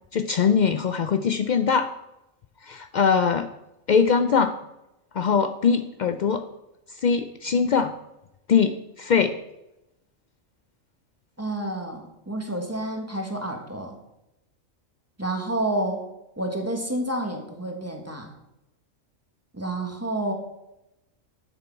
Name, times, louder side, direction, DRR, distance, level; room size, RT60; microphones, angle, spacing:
voice 1, 0.1-1.9 2.6-3.5 3.9-4.5 5.1-6.4 7.0-7.9 8.5-9.4, left 6 dB, 85° left, 8 dB, 0.4 m, -22 dB
voice 2, 11.4-14.0 15.2-16.0 16.4-18.3 19.5-20.3, right 1 dB, 10° right, 2 dB, 1.2 m, -29 dB
11.0 x 6.9 x 4.5 m, 0.91 s
omnidirectional pair, 1.4 m